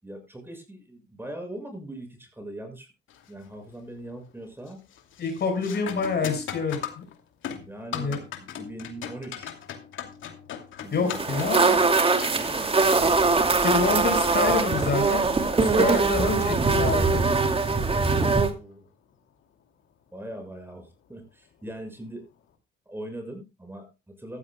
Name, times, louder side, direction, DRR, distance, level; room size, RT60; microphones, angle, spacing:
voice 1, 0.0-2.9 3.3-4.8 7.7-8.2 8.5-9.5 10.8-11.2 11.5-12.7 18.1-18.9 20.1-22.2 22.8-24.4, right 1 dB, 10° right, 5 dB, 6.8 m, -41 dB
sound 1, 3.1-3.5 3.9-4.3 4.7-18.2 20.7-20.8 21.6-21.8, left 9 dB, 80° left, 2.6 m, -40 dB
voice 2, 5.2-7.0 7.9-8.2 10.9-11.7 13.6-15.3 15.6-17.2, left 4 dB, 55° left, 6 dB, 5.6 m, -27 dB
sound 2, 11.1-18.5, right 3 dB, 30° right, 2.5 m, -22 dB
15.0 x 14.5 x 2.3 m, 0.27 s
cardioid pair, 90°, 20 cm